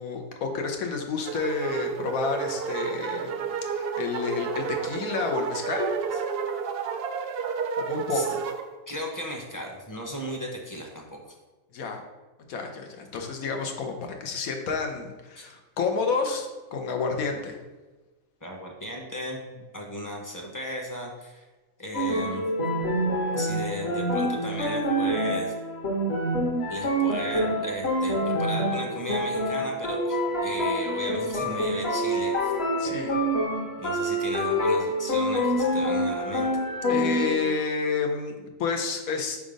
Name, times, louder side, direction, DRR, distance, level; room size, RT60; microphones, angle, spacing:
voice 1, 0.0-5.9 7.8-8.4 11.7-12.0 12.5-17.6 32.8-33.1 36.9-39.4, left 5 dB, 90° left, 3 dB, 1.2 m, -30 dB
sound 1, 1.2-8.6, right 6 dB, 65° right, 0.6 m, -31 dB
voice 2, 8.9-11.3 15.4-15.5 18.4-21.5 21.8-22.4 23.3-25.5 26.7-32.5 33.8-36.6, equal, 20° left, 0 dB, 0.6 m, -36 dB
sound 2, 21.9-37.6, equal, 50° left, 1.4 m, -26 dB
5.1 x 3.6 x 5.1 m, 1.2 s
omnidirectional pair, 1.4 m